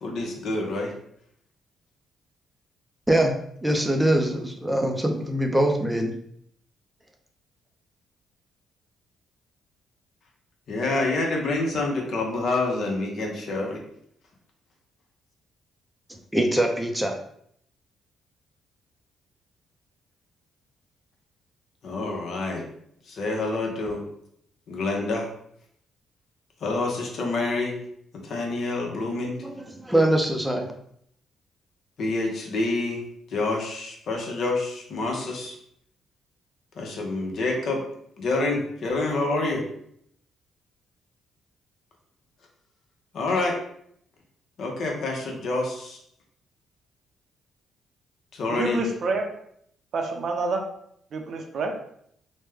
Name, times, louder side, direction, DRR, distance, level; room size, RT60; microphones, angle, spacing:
voice 1, 0.0-0.9 10.7-13.8 21.8-22.7 23.1-24.0 24.7-25.3 26.6-27.8 28.2-29.4 32.0-33.0 33.3-35.6 36.8-37.8 38.2-39.6 43.1-43.6 44.6-46.0 48.3-48.8, left 2 dB, 65° left, 0 dB, 0.8 m, -27 dB
voice 2, 3.6-6.1 16.3-17.2 29.4-30.7, right 1 dB, 5° right, 3 dB, 0.5 m, -23 dB
voice 3, 48.5-49.3 49.9-50.6 51.1-51.8, right 3 dB, 60° right, 3 dB, 0.6 m, -27 dB
3.1 x 2.1 x 3.4 m, 0.69 s
cardioid pair, 90°, 0 cm